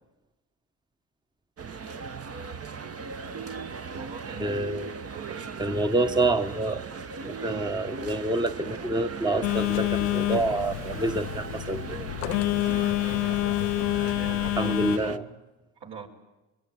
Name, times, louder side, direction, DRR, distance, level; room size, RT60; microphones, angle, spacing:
sound 1, 1.6-15.2, right 5 dB, 30° right, 1.2 m, -38 dB
voice 1, 3.9-4.6 5.1-5.6 14.2-15.3 15.8-16.1, right 6 dB, 60° right, 2 dB, 4.8 m, -43 dB
voice 2, 4.4-4.9 5.6-6.8 7.2-11.8 14.6-15.2, right 2 dB, 10° right, 8 dB, 1.2 m, -27 dB
Telephone, 9.4-15.0, left 17 dB, 80° left, 0.8 m, -27 dB
24.0 x 22.5 x 9.2 m, 1.1 s
hypercardioid pair, 65°, 47 cm